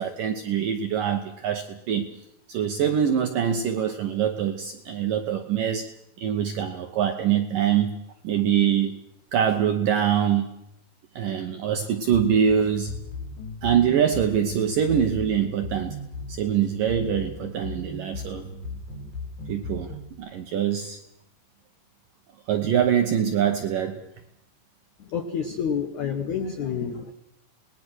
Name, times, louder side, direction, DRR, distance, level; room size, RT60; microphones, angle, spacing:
voice 1, 0.0-2.0 2.5-5.9 6.2-8.0 8.2-9.0 9.3-10.5 11.2-13.0 13.6-16.0 16.3-18.5 19.5-21.0 22.5-24.0, right 8 dB, 75° right, 6 dB, 2.0 m, -24 dB
sound 1, 12.1-20.1, left 2 dB, 50° left, 5.3 m, -37 dB
voice 2, 25.0-27.1, left 7 dB, 75° left, 7 dB, 1.7 m, -29 dB
27.0 x 20.0 x 6.2 m, 0.77 s
omnidirectional pair, 5.3 m